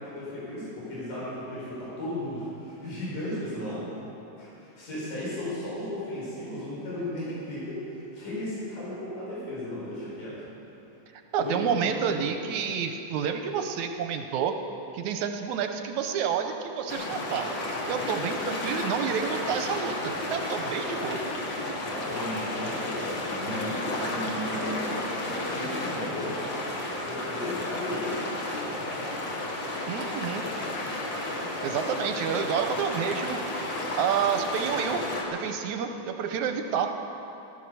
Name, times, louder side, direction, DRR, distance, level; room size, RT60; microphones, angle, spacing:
voice 1, 0.0-3.9 4.4-10.4 11.3-12.2 20.8-20.9 21.8-24.7 25.3-26.4 27.0-28.5, left 1 dB, 80° left, -7 dB, 6.2 m, -35 dB
voice 2, 11.1-14.5 14.9-17.6 17.9-21.2 29.9-30.5 31.6-33.4 33.9-37.0, right 7 dB, 75° right, 6 dB, 2.0 m, -29 dB
sound 1, 16.9-35.2, left 1 dB, 40° left, 2.2 m, -32 dB
15.0 x 14.5 x 6.8 m, 2.9 s
omnidirectional pair, 3.7 m